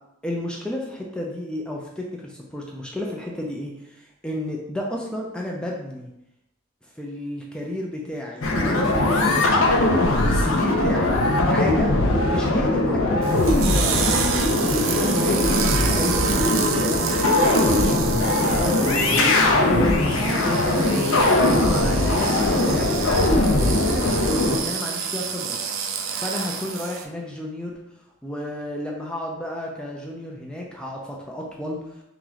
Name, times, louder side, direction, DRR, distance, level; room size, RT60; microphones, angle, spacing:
voice 1, 0.2-6.1 7.0-12.0 12.2-14.3 14.7-21.1 21.6-25.6 26.2-27.8 28.2-31.8, left 1 dB, 5° left, -2 dB, 0.4 m, -31 dB
sound 1, 8.4-24.6, left 2 dB, 65° left, 0.6 m, -20 dB
sound 2, 13.2-27.0, right 6 dB, 65° right, 0.4 m, -29 dB
3.0 x 3.0 x 3.8 m, 0.86 s
head